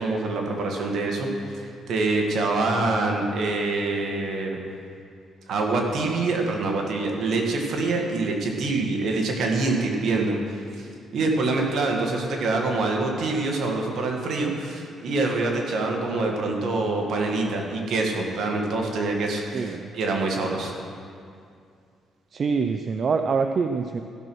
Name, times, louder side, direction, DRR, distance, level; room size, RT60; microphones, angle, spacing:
voice 1, 0.0-4.6 5.5-10.4 10.8-20.7, right 3 dB, 65° right, 1 dB, 1.8 m, -25 dB
voice 2, 19.5-19.9 22.3-24.0, right 5 dB, 50° right, 7 dB, 0.4 m, -25 dB
15.0 x 6.2 x 6.2 m, 2.4 s
cardioid pair, 90°, 0 cm